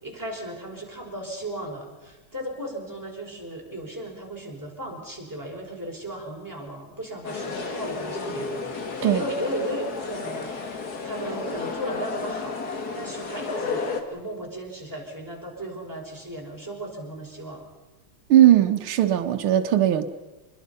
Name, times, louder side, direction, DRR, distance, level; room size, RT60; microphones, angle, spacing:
voice 1, 0.0-17.6, right 1 dB, 10° right, -2 dB, 4.8 m, -36 dB
sound 1, 7.2-14.0, left 4 dB, 50° left, 2.2 m, -32 dB
voice 2, 18.3-20.1, right 12 dB, 80° right, 6 dB, 1.9 m, -18 dB
26.0 x 21.0 x 5.6 m, 1.2 s
omnidirectional pair, 2.3 m